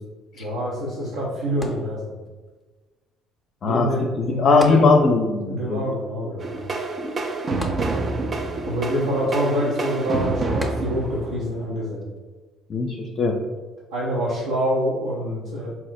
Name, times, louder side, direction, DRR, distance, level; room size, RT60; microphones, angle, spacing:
voice 1, 0.3-2.2 3.6-5.0 5.5-6.6 8.6-12.0 13.9-15.7, equal, 80° right, -7 dB, 0.8 m, -26 dB
sound 1, 1.6-2.5 4.6-5.5 5.8-5.9 7.6-8.4 10.6-11.3 12.0-12.1, left 1 dB, 5° left, 0.7 m, -35 dB
voice 2, 4.2-5.8 12.7-13.3, left 4 dB, 50° left, 2 dB, 0.5 m, -19 dB
sound 2, 6.4-11.9, right 3 dB, 40° right, 0.5 m, -28 dB
4.2 x 2.1 x 4.0 m, 1.3 s
hypercardioid pair, 55°, 0 cm